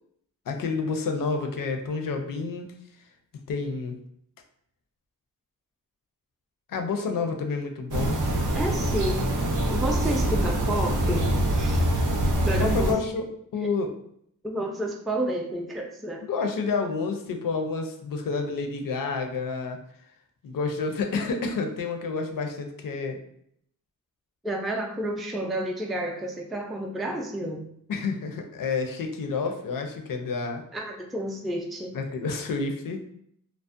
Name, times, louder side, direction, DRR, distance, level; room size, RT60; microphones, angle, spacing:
voice 1, 0.5-2.7 3.5-4.0 6.7-8.1 12.6-13.2 13.5-13.9 16.2-19.8 20.4-23.2 27.9-30.6 31.9-33.1, left 4 dB, 70° left, 4 dB, 0.5 m, -29 dB
sound 1, 7.9-12.9, right 1 dB, 65° right, 0.5 m, -24 dB
voice 2, 8.6-9.3 9.7-11.3 11.5-11.9 12.4-13.0 13.6-13.7 14.4-16.3 24.4-27.7 30.7-31.9, right 1 dB, ahead, 1 dB, 0.3 m, -30 dB
2.5 x 2.0 x 2.4 m, 0.70 s
cardioid pair, 60°, 34 cm